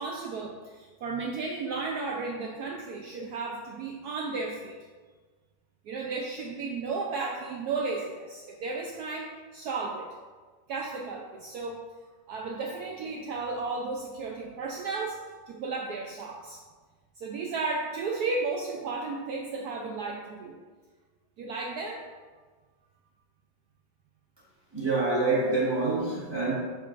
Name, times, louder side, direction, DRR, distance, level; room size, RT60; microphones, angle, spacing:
voice 1, 0.0-4.8 5.9-10.1 10.7-11.8 12.3-15.2 15.5-16.6 17.2-20.6 21.4-22.1, right 3 dB, 90° right, 0 dB, 0.8 m, -34 dB
voice 2, 24.7-26.5, right 3 dB, 20° right, -6 dB, 0.8 m, -26 dB
10.0 x 3.7 x 2.5 m, 1.4 s
omnidirectional pair, 2.2 m